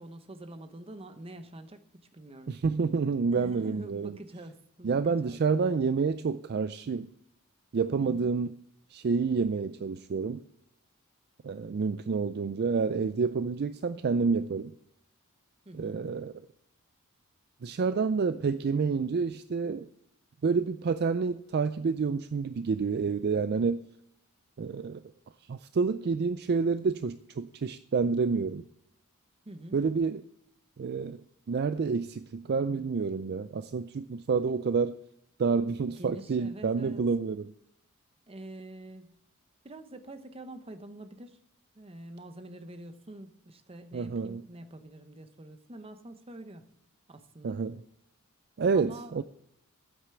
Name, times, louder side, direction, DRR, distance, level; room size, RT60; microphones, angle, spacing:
voice 1, 0.0-2.5 3.3-5.7 8.0-8.3 15.7-16.1 29.5-29.8 36.0-37.0 38.3-39.1 39.6-41.4 41.7-46.7 47.1-47.6 48.7-49.2, right 1 dB, 25° right, 9 dB, 0.9 m, -46 dB
voice 2, 2.5-4.1 4.8-7.1 7.7-8.6 8.9-10.4 11.4-14.7 15.7-16.3 17.6-19.9 20.4-23.9 24.6-25.0 25.5-28.6 29.7-30.2 30.8-31.2 31.5-34.9 35.4-37.5 43.9-44.4 47.4-47.8 48.6-49.2, right 5 dB, 45° right, 12 dB, 0.4 m, -28 dB
9.1 x 8.1 x 6.9 m, 0.79 s
head